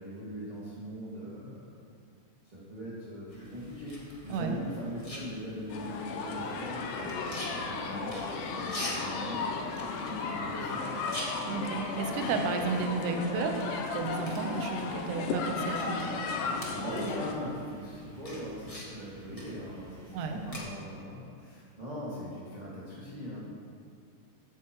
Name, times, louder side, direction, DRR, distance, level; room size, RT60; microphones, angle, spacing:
voice 1, 0.0-1.7 2.4-11.0 16.4-23.4, equal, 15° right, -10 dB, 1.5 m, -41 dB
sound 1, 3.3-20.6, left 1 dB, 40° left, 0.4 m, -46 dB
sound 2, 5.7-17.3, left 4 dB, 80° left, 2.3 m, -35 dB
voice 2, 11.5-16.0 20.1-20.5, right 4 dB, 75° right, 4 dB, 2.3 m, -32 dB
15.0 x 9.4 x 3.1 m, 2.4 s
omnidirectional pair, 3.9 m